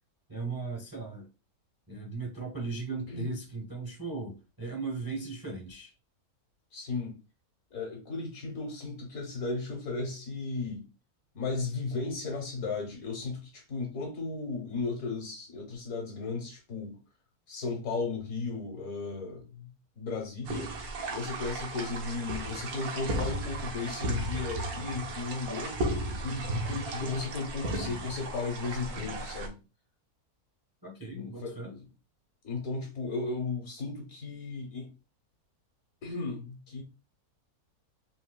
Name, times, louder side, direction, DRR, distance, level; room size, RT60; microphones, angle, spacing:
voice 1, 0.3-1.3 1.9-5.9 30.8-31.7, right 4 dB, 25° right, 0.5 m, -37 dB
voice 2, 6.7-7.2 7.7-10.9 11.3-17.0 17.5-20.7 21.1-29.6 31.1-31.9 32.4-34.9 36.0-36.8, left 3 dB, 70° left, 1.4 m, -35 dB
sound 1, 20.4-29.5, right 1 dB, 80° right, 1.2 m, -35 dB
3.9 x 2.3 x 2.2 m
omnidirectional pair, 1.6 m